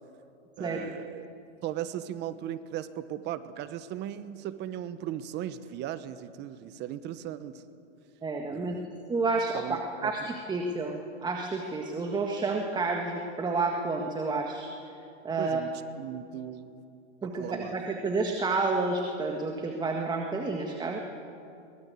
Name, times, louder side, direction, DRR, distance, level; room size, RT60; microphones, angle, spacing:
voice 1, 0.6-1.3 1.6-7.6 8.5-8.9 9.5-9.8 10.0-10.3 15.4-15.7 16.0-16.8 17.2-17.8 20.5-20.6, right 11 dB, 30° right, 13 dB, 1.2 m, -37 dB
voice 2, 8.2-8.8 9.1-14.7 15.2-15.6 17.2-21.0, right 3 dB, 10° right, 2 dB, 1.7 m, -30 dB
23.5 x 21.0 x 8.4 m, 2.7 s
hypercardioid pair, 135°, 36 cm